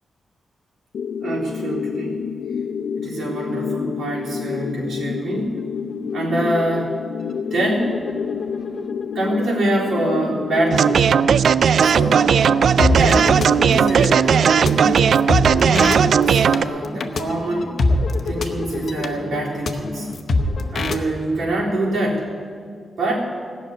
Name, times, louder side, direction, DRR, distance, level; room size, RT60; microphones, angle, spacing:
sound 1, 0.9-10.9, left 7 dB, 75° left, 0.4 m, -29 dB
voice 1, 1.2-2.2 3.0-5.6 6.1-7.0 7.5-8.0 9.1-11.3 11.8-15.1 15.5-17.8 18.2-20.1 20.7-22.3 23.0-23.4, right 1 dB, 85° right, -5 dB, 3.7 m, -25 dB
sound 2, 5.6-5.7 5.9-6.3 6.7-21.0, left 2 dB, 55° left, 0.9 m, -26 dB
sound 3, 10.7-16.6, right 7 dB, 65° right, 0.3 m, -16 dB
17.0 x 6.4 x 9.7 m, 2.2 s
wide cardioid pair, 165°, 0 cm